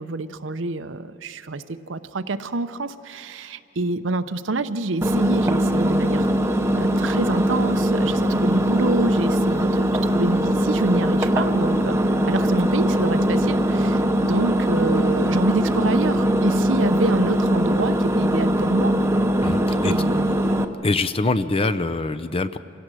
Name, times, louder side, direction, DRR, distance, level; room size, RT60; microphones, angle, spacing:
voice 1, 0.0-6.3 6.8-19.0 19.8-20.6, right 3 dB, 75° right, 11 dB, 0.7 m, -27 dB
Engine, 5.0-20.6, equal, 15° right, 0.8 m, -21 dB
voice 2, 19.4-19.9 20.8-22.6, left 3 dB, 30° left, 11 dB, 0.6 m, -24 dB
27.0 x 17.0 x 6.3 m, 2.9 s
head